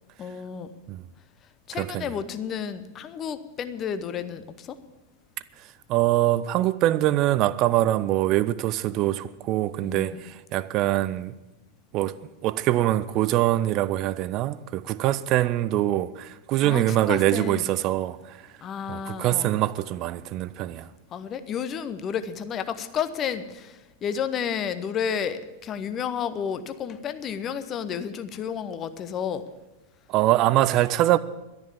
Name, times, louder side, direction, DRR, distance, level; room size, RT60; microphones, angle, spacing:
voice 1, 0.2-0.7 1.7-4.4 9.8-10.2 16.6-16.8 17.1-17.6 18.6-19.5 21.1-23.7 24.0-29.4, left 7 dB, 30° left, 0.9 m, -31 dB
voice 2, 1.7-2.2 5.9-11.3 11.9-18.4 18.9-20.9 30.1-31.2, right 14 dB, 40° right, 0.5 m, -24 dB
12.0 x 10.5 x 7.2 m
figure-of-eight pair, 90°, 0 cm